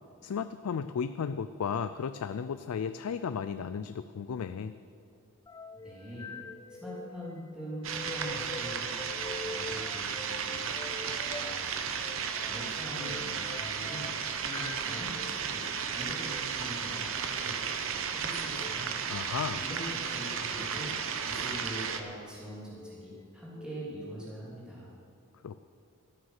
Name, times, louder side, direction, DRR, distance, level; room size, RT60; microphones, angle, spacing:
voice 1, 0.2-4.7 19.1-19.6 25.4-25.6, left 6 dB, 90° left, 11 dB, 0.4 m, -34 dB
sound 1, 5.5-15.4 16.2-16.4 18.4-18.8 19.6-20.1 20.6-20.9 21.7-22.2 22.7-23.7, left 2 dB, 15° left, 0.3 m, -45 dB
voice 2, 5.7-6.3 6.8-9.0 9.4-10.7 11.3-11.6 12.4-14.1 14.3-15.6 15.9-18.9 19.2-21.0 21.2-24.9, equal, 5° right, -7 dB, 2.9 m, -43 dB
sound 2, 7.8-22.0, right 6 dB, 70° right, 0.9 m, -34 dB
13.5 x 9.4 x 6.5 m, 2.4 s
head